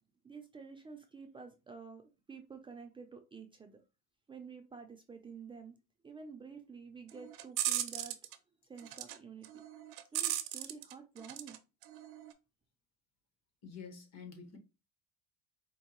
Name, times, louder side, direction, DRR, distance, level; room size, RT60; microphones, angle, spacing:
voice 1, 0.2-2.0 2.3-3.8 4.3-5.8 6.0-8.2 8.7-9.5 10.1-11.6, right 5 dB, 15° right, 0.4 m, -50 dB
sound 1, 7.1-8.4 8.8-9.2 9.4-11.6 11.8-12.3, right 13 dB, 75° right, 0.6 m, -37 dB
voice 2, 13.6-14.6, left 5 dB, 55° left, 1.3 m, -48 dB
4.6 x 2.6 x 2.9 m
cardioid pair, 135°, 31 cm